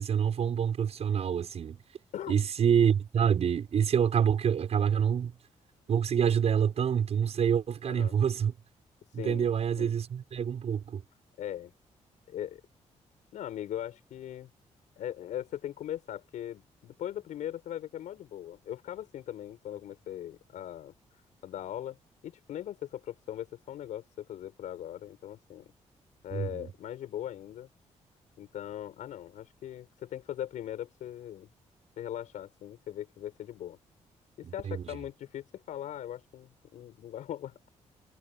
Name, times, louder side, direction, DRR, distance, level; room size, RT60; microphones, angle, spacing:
voice 1, 0.0-1.8 2.3-5.3 5.9-8.5 9.1-11.0 26.3-26.7 34.4-34.8, right 8 dB, 60° right, 6.5 m, -27 dB
voice 2, 7.9-8.2 9.1-9.5 9.7-9.9 11.4-11.7 12.3-12.6 13.3-14.5 15.0-20.9 21.4-22.0 22.2-25.7 26.2-27.7 28.4-31.5 32.0-33.8 34.4-37.5, left 11 dB, 90° left, 7.9 m, -40 dB
cardioid pair, 120°, 12 cm